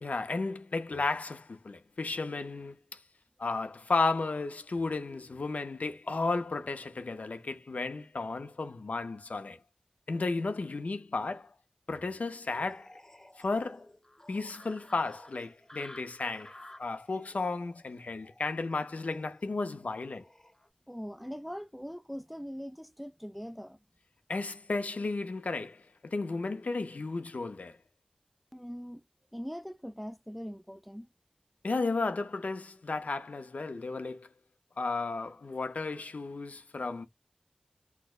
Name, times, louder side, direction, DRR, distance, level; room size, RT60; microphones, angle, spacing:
voice 1, 0.0-3.0 3.4-9.6 10.1-11.5 11.9-12.9 13.4-13.9 14.3-16.5 16.8-20.3 24.3-27.8 31.6-34.3 34.8-37.1, left 3 dB, 75° left, 0.4 m, -33 dB
sound 1, 12.4-20.7, left 1 dB, 20° left, 0.7 m, -54 dB
voice 2, 20.9-23.8 28.5-29.0 29.3-31.1, equal, ahead, 0.3 m, -41 dB
4.2 x 2.0 x 2.3 m
wide cardioid pair, 45°, 3 cm